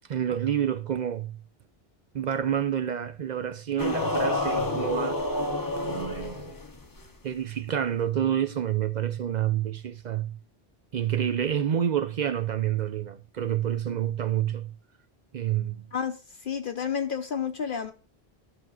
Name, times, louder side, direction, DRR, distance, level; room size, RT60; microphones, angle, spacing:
voice 1, 0.1-1.4 2.1-5.2 5.8-6.6 7.2-10.4 10.9-14.7 15.3-15.8, right 10 dB, 55° right, 0.5 m, -28 dB
sound 1, 3.8-7.1, left 2 dB, 20° left, 0.7 m, -29 dB
voice 2, 15.9-17.9, left 7 dB, 55° left, 0.9 m, -31 dB
13.0 x 6.2 x 2.3 m
omnidirectional pair, 1.1 m